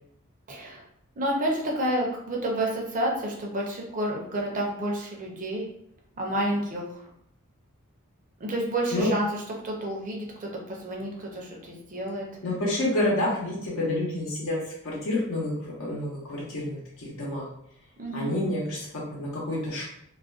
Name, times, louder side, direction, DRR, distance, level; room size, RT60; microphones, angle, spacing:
voice 1, 0.5-0.8 1.2-5.6 6.2-7.0 8.4-9.3 9.6-12.3 18.0-18.3, right 1 dB, 35° right, -1 dB, 0.6 m, -30 dB
voice 2, 12.4-17.5 18.1-19.8, left 1 dB, 65° left, -5 dB, 0.8 m, -29 dB
2.4 x 2.1 x 2.4 m, 0.72 s
head